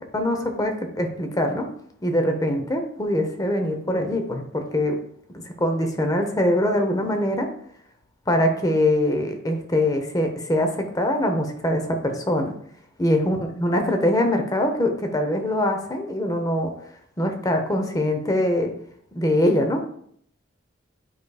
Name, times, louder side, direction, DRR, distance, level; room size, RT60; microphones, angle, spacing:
voice 1, 0.1-1.7 2.0-5.0 5.3-7.5 8.3-12.5 13.0-16.7 17.2-18.7 19.1-19.8, left 1 dB, 20° left, 5 dB, 0.8 m, -23 dB
9.2 x 4.8 x 2.3 m, 0.67 s
head